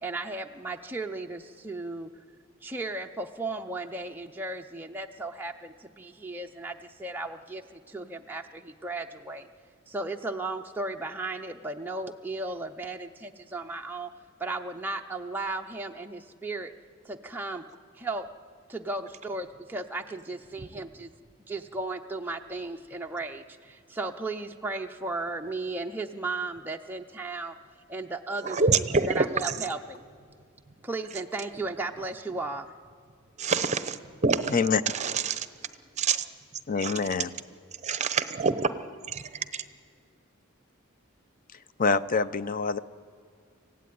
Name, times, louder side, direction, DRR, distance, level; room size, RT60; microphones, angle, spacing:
voice 1, 0.0-2.1 2.6-9.5 9.9-14.1 14.4-16.7 17.0-17.6 17.9-18.3 18.7-21.1 21.5-27.6 27.9-28.6 29.1-30.0 30.8-32.7, right 2 dB, 10° right, 2 dB, 0.6 m, -35 dB
voice 2, 28.4-29.3 33.4-34.0 34.2-34.5 34.9-35.5 36.0-36.2 36.8-36.9 37.8-38.7 39.1-39.6, right 4 dB, 35° right, 12 dB, 0.8 m, -26 dB
voice 3, 34.5-34.8 36.7-37.3 41.8-42.8, left 4 dB, 40° left, 14 dB, 0.6 m, -25 dB
25.0 x 16.0 x 9.4 m, 2.2 s
head